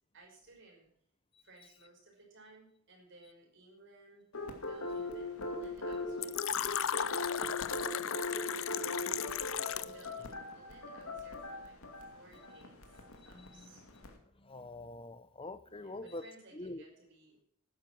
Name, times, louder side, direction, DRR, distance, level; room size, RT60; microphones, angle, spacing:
voice 1, 0.1-0.9 1.4-4.3 4.6-6.6 7.7-9.3 9.8-11.8 12.1-13.8 15.6-17.4, right 2 dB, 60° right, 0 dB, 5.5 m, -58 dB
sound 1, 4.3-14.1, left 2 dB, 85° left, 2.4 m, -40 dB
Fill (with liquid), 6.2-10.1, left 9 dB, 65° left, 0.6 m, -35 dB
voice 2, 13.2-13.7 14.4-16.2 16.5-16.8, left 2 dB, 25° left, 13 dB, 0.8 m, -45 dB
12.5 x 10.5 x 6.1 m, 0.62 s
head